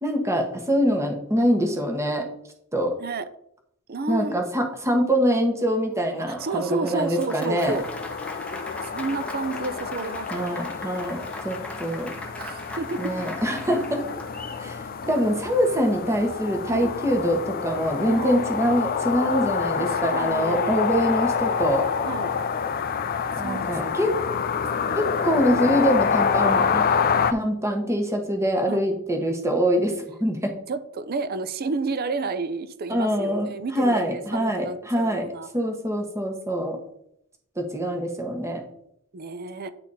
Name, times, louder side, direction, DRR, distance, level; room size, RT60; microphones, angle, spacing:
voice 1, 0.0-2.3 2.7-2.9 4.1-7.8 10.3-12.1 13.0-14.0 14.6-21.9 23.4-24.1 24.9-26.8 27.3-30.5 32.9-35.3 35.5-36.8 37.6-38.6, equal, 15° right, 3 dB, 1.2 m, -24 dB
voice 2, 3.9-4.4 4.9-5.1 6.3-7.9 8.9-10.7 11.0-11.1 12.3-13.1 13.7-13.8 15.0-15.2 16.7-16.9 18.0-18.4 19.7-20.8 22.0-22.3 23.4-24.2 28.7-28.8 30.7-35.5 39.1-39.7, right 3 dB, 45° right, 12 dB, 0.5 m, -31 dB
Applause, 5.9-14.6, left 1 dB, 5° left, 0.8 m, -40 dB
sound 1, 7.6-27.3, left 6 dB, 45° left, 0.4 m, -27 dB
9.6 x 4.1 x 4.2 m, 0.75 s
head